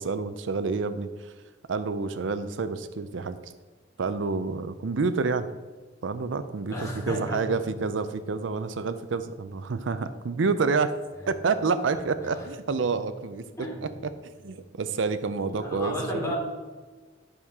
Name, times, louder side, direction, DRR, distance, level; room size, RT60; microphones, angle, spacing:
voice 1, 0.0-1.3 1.7-3.5 4.0-5.5 6.0-10.9 11.3-13.4 13.8-14.1 14.4-15.9, right 4 dB, 75° right, 11 dB, 0.5 m, -28 dB
voice 2, 6.7-7.6 12.2-12.4 12.7-12.9 13.6-13.8 15.4-16.3, equal, 15° left, -3 dB, 2.7 m, -33 dB
11.5 x 6.4 x 3.6 m, 1.3 s
head